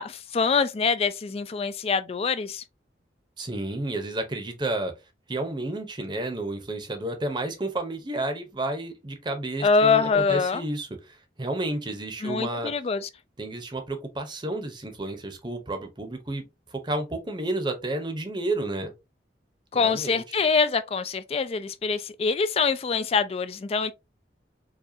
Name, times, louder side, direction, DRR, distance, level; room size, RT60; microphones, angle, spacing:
voice 1, 0.0-2.6 9.6-10.6 12.2-13.1 19.7-23.9, left 5 dB, 35° left, 0.3 m, -24 dB
voice 2, 3.4-4.9 5.3-12.7 13.4-16.4 16.7-18.9 19.7-20.4, right 2 dB, 25° right, 0.8 m, -31 dB
4.8 x 2.3 x 2.6 m
head